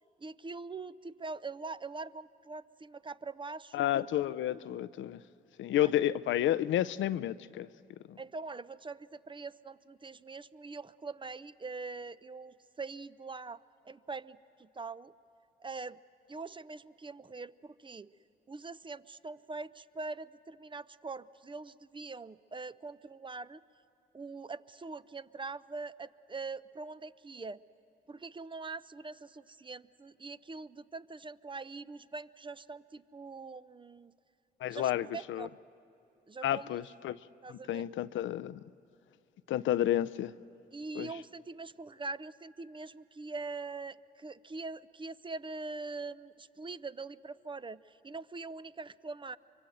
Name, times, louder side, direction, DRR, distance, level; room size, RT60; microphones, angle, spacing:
voice 1, 0.2-3.8 5.8-5.9 8.2-15.1 15.6-16.0 16.3-18.1 18.5-23.6 24.1-27.6 28.1-34.1 34.7-35.6 36.3-36.8 37.4-37.8 40.7-49.4, right 3 dB, 25° right, 0.6 m, -43 dB
voice 2, 3.7-5.2 5.6-7.7 8.1-8.2 34.6-35.5 36.4-37.2 37.5-38.6 39.5-40.3 41.0-41.1, left 12 dB, 70° left, 0.5 m, -31 dB
25.0 x 23.0 x 7.8 m
supercardioid pair, 60°, 21 cm